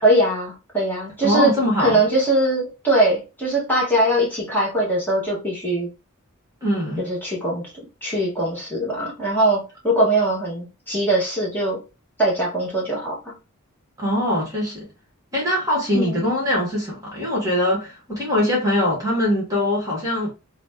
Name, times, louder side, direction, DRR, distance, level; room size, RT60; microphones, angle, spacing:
voice 1, 0.0-1.5 1.8-5.9 7.0-7.6 8.0-11.8 12.2-13.2 15.9-16.2, right 1 dB, 10° left, 1.3 m, -21 dB
voice 2, 1.2-2.0 6.6-7.0 14.0-14.9 15.3-20.3, left 1 dB, 15° right, 1.1 m, -22 dB
3.0 x 2.0 x 3.5 m
head